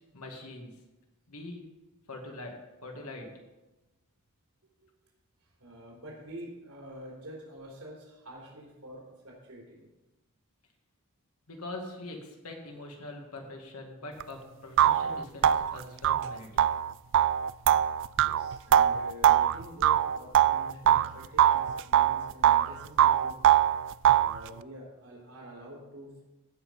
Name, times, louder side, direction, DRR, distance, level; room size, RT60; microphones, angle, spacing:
voice 1, 0.1-0.8 1.3-1.6 2.1-3.3 11.5-16.6, left 2 dB, 80° left, 2 dB, 2.2 m, -43 dB
voice 2, 4.6-4.9 5.4-9.9 17.8-17.9 18.2-23.4 24.1-26.2, right 1 dB, 75° right, -4 dB, 3.7 m, -47 dB
sound 1, 14.2-14.3 14.8-21.1 21.4-22.7 23.0-24.4, right 10 dB, 55° right, 0.3 m, -22 dB
16.0 x 5.7 x 5.5 m, 1.1 s
head